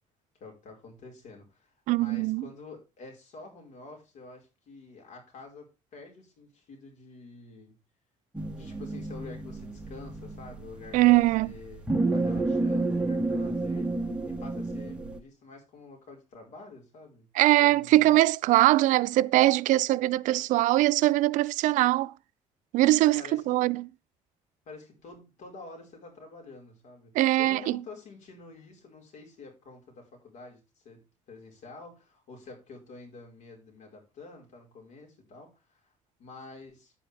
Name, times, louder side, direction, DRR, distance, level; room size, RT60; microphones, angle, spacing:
voice 1, 0.4-7.8 8.5-17.3 17.6-18.1 23.1-23.6 24.6-35.9 36.2-36.9, left 3 dB, 70° left, 5.1 m, -48 dB
voice 2, 1.9-2.4 10.9-11.5 17.4-22.1 22.7-23.9 27.2-27.8, right 17 dB, 80° right, 0.4 m, -22 dB
sound 1, 8.3-15.2, right 2 dB, 10° right, 1.4 m, -31 dB
9.9 x 9.1 x 3.5 m
cardioid pair, 145°, 13 cm